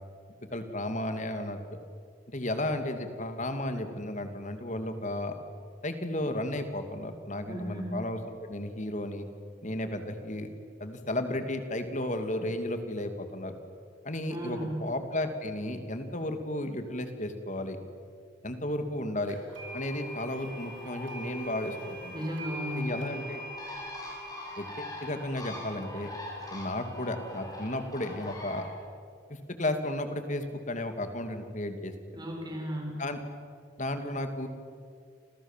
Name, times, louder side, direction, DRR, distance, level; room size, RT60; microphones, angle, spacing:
voice 1, 0.5-1.6 2.3-5.4 5.8-9.3 9.6-10.5 10.8-13.6 14.0-17.8 18.4-19.4 19.7-22.2 22.8-23.4 24.6-26.1 26.5-28.6 29.3-31.9 33.0-33.2 33.8-34.5, left 1 dB, 35° left, 7 dB, 2.7 m, -33 dB
voice 2, 7.5-8.0 14.3-14.9 22.1-23.0 32.1-33.1, equal, 20° right, 0 dB, 6.7 m, -35 dB
sound 1, 19.3-28.1, right 1 dB, 60° right, 7.0 m, -44 dB
Bird, 19.5-28.7, left 2 dB, 20° left, 7.3 m, -44 dB
30.0 x 26.0 x 7.6 m, 2.3 s
head